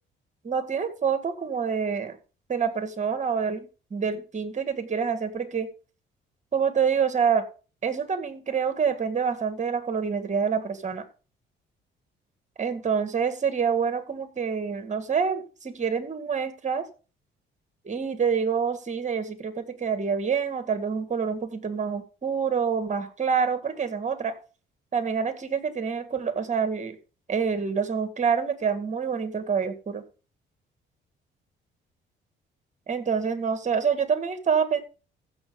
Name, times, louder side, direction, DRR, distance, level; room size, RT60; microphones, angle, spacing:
voice 1, 0.4-2.2 2.5-5.7 6.5-7.4 7.8-11.0 12.6-16.8 17.8-24.3 24.9-27.0 27.3-30.0 32.9-34.8, right 6 dB, 35° right, 9 dB, 2.0 m, -27 dB
15.0 x 6.3 x 3.9 m, 0.35 s
cardioid pair, 90°, 20 cm